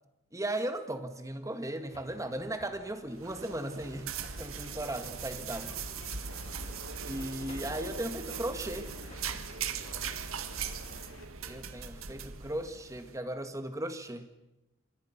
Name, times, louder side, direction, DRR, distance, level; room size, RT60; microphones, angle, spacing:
voice 1, 0.3-5.7 7.1-9.4 11.4-14.3, right 1 dB, 15° right, 7 dB, 2.0 m, -37 dB
sound 1, 1.9-11.0, left 1 dB, 30° left, 3.6 m, -56 dB
sound 2, 3.1-13.1, right 6 dB, 80° right, 1.8 m, -40 dB
sound 3, 4.3-11.3, left 2 dB, 70° left, 3.1 m, -53 dB
28.0 x 27.0 x 6.0 m, 0.98 s
head